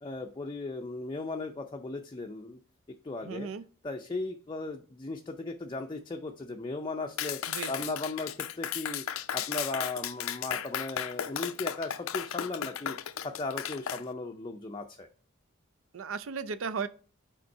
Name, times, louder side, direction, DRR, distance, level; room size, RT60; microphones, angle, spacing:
voice 1, 0.0-2.6 3.0-3.5 3.8-9.0 9.3-15.1, left 3 dB, 25° left, 0.5 m, -37 dB
voice 2, 3.2-3.6 7.5-7.9 15.9-16.9, right 5 dB, 70° right, 0.5 m, -35 dB
Clapping, 7.2-14.0, left 9 dB, 80° left, 0.5 m, -35 dB
5.2 x 3.7 x 5.3 m
head